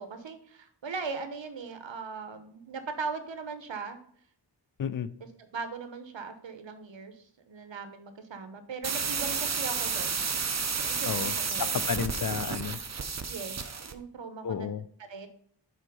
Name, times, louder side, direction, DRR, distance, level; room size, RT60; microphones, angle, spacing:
voice 1, 0.0-4.0 5.4-10.2 10.9-11.8 13.3-13.6 13.8-14.7 15.1-15.3, right 4 dB, 80° right, 8 dB, 1.0 m, -39 dB
sound 1, 8.8-14.0, right 5 dB, 35° right, 0.7 m, -31 dB
voice 2, 11.6-12.8 14.4-14.8, left 7 dB, 50° left, 15 dB, 0.4 m, -32 dB
6.3 x 4.3 x 5.4 m, 0.63 s
wide cardioid pair, 65°, 45 cm